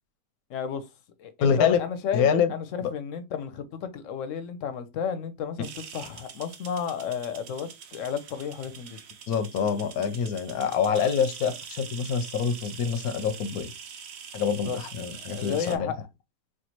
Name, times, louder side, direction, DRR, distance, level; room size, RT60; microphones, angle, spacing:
voice 1, 0.5-0.9 1.2-9.0 14.5-14.8 15.2-16.1, left 7 dB, 70° left, 0.9 m, -33 dB
voice 2, 1.4-1.8 2.1-2.5 2.8-2.9 9.3-13.7 14.3-15.9, left 7 dB, 90° left, 1.1 m, -26 dB
sound 1, 5.6-15.8, right 7 dB, 60° right, 0.7 m, -44 dB
4.4 x 2.4 x 2.9 m
omnidirectional pair, 1.5 m